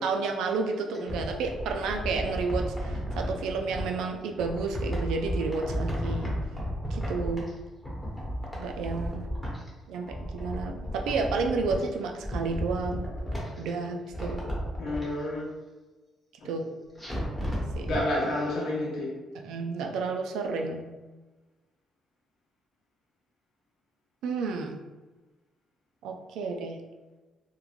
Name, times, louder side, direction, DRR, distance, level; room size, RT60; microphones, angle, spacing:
voice 1, 0.0-6.3 6.9-7.5 8.5-9.2 9.9-13.0 13.6-14.4 16.4-16.8 17.8-17.9 19.3-20.9 24.2-24.8 26.0-26.8, right 4 dB, 90° right, 3 dB, 0.3 m, -31 dB
sound 1, 0.7-3.9 4.4-7.6 7.8-9.7 10.0-11.9 12.2-13.7 14.1-15.1 17.0-18.0 18.4-18.5, equal, 5° left, 1.0 m, -33 dB
voice 2, 14.8-15.5 16.4-16.5 17.8-19.1, left 1 dB, 75° left, -4 dB, 0.8 m, -29 dB
3.0 x 2.1 x 2.3 m, 1.2 s
cardioid pair, 90°, 0 cm